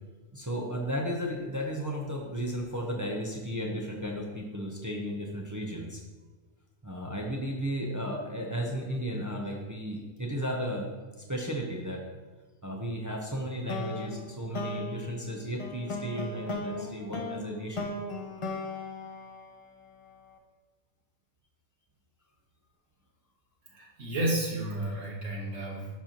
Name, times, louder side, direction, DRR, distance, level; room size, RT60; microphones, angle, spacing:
voice 1, 0.3-6.0 6.8-10.9 11.2-12.0 12.6-17.9, equal, 20° right, -1 dB, 0.6 m, -34 dB
sound 1, 13.7-20.1, left 2 dB, 35° left, 0.5 m, -37 dB
voice 2, 23.7-25.9, right 1 dB, 80° right, -3 dB, 1.9 m, -32 dB
11.0 x 4.3 x 3.0 m, 1.3 s
omnidirectional pair, 1.3 m